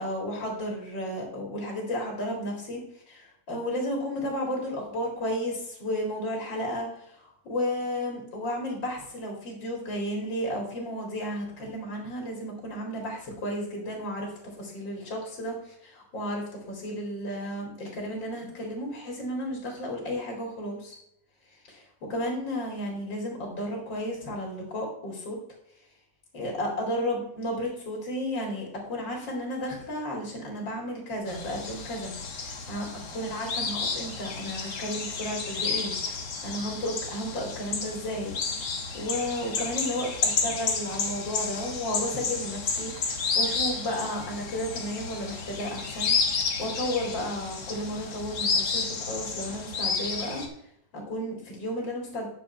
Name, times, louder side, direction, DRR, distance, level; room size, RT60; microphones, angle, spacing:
voice 1, 0.0-21.0 21.5-25.4 26.3-32.9 33.1-38.3 38.6-50.4 50.9-52.3, equal, 85° left, 0 dB, 3.0 m, -33 dB
sound 1, 31.3-50.5, left 4 dB, 65° left, 1.9 m, -31 dB
9.8 x 6.6 x 4.3 m, 0.76 s
omnidirectional pair, 2.0 m